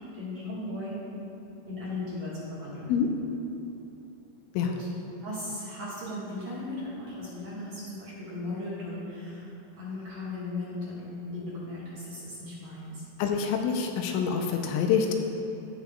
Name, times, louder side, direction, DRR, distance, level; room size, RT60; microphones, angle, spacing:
voice 1, 0.1-1.0 1.7-3.0 4.6-4.9 5.2-9.5 9.7-13.0, left 2 dB, 60° right, -10 dB, 1.8 m, -37 dB
voice 2, 13.2-15.1, left 7 dB, 85° left, 3 dB, 3.0 m, -26 dB
16.0 x 5.9 x 2.3 m, 2.8 s
omnidirectional pair, 5.5 m